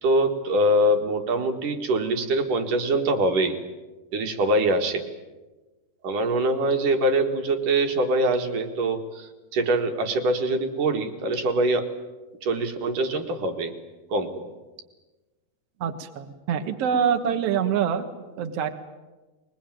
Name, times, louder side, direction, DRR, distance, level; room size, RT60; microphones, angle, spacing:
voice 1, 0.0-3.6 4.1-5.0 6.0-11.9 12.4-13.8 14.1-14.5, right 1 dB, 55° right, 5 dB, 2.9 m, -24 dB
voice 2, 15.8-18.0 18.4-18.7, right 8 dB, 75° right, 6 dB, 1.4 m, -25 dB
22.5 x 21.5 x 9.1 m, 1.2 s
omnidirectional pair, 5.0 m